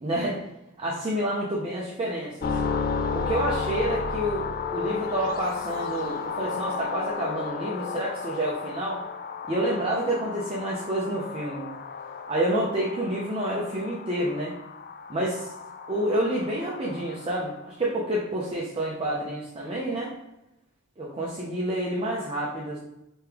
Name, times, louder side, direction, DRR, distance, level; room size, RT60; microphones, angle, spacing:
voice 1, 0.0-0.4 0.8-2.6 3.1-4.5 4.7-9.0 9.5-11.7 12.3-14.5 15.1-15.5 15.9-20.1 21.0-22.8, right 1 dB, 25° right, -5 dB, 0.6 m, -28 dB
sound 1, 2.4-17.5, left 5 dB, 45° left, 0.3 m, -33 dB
3.5 x 3.1 x 3.4 m, 0.89 s
head